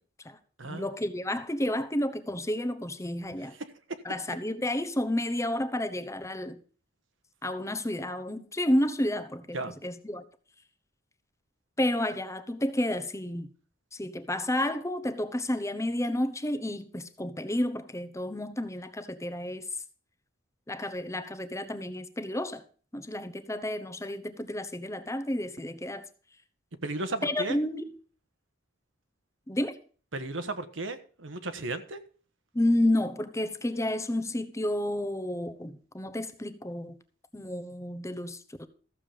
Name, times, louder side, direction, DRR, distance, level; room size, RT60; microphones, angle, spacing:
voice 1, 0.7-3.5 4.0-6.6 7.4-10.2 11.8-13.5 13.9-19.6 20.7-22.6 22.9-26.0 27.2-27.9 29.5-29.8 32.5-37.0 37.3-38.7, left 1 dB, 15° left, 1.0 m, -31 dB
voice 2, 26.8-27.6 30.1-32.0, right 2 dB, 80° right, 1.3 m, -34 dB
14.0 x 7.4 x 5.1 m
head